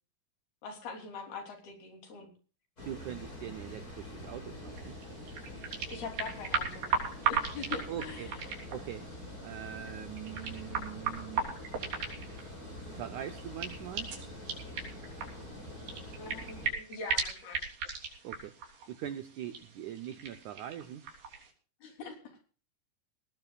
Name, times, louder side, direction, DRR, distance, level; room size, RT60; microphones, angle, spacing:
voice 1, 0.6-2.3 5.9-6.9 7.3-8.3 16.1-17.6 21.8-22.4, left 4 dB, 70° left, 3 dB, 5.3 m, -43 dB
Water, 2.8-16.7, left 1 dB, 20° left, 6.4 m, -45 dB
voice 2, 2.8-5.0 7.9-8.3 8.7-11.8 12.9-14.1 16.7-16.8 18.2-18.6 18.9-21.1, right 11 dB, 85° right, 11 dB, 1.7 m, -42 dB
sound 1, 4.7-21.5, right 6 dB, 65° right, 5.2 m, -38 dB
20.0 x 18.5 x 2.4 m, 0.38 s
omnidirectional pair, 4.7 m